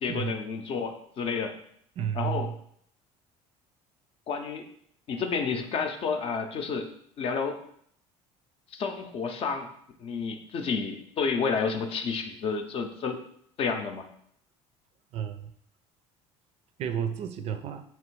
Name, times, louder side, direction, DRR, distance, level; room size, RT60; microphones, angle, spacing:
voice 1, 0.0-1.6 2.1-2.5 4.3-4.7 5.1-6.9 7.2-7.6 8.7-9.7 10.0-13.2 13.6-14.1, left 5 dB, 45° left, 6 dB, 0.6 m, -30 dB
voice 2, 2.0-2.5 15.1-15.5 16.8-17.8, right 8 dB, 50° right, 9 dB, 0.4 m, -31 dB
3.4 x 3.1 x 4.6 m, 0.66 s
cardioid pair, 115°, 13 cm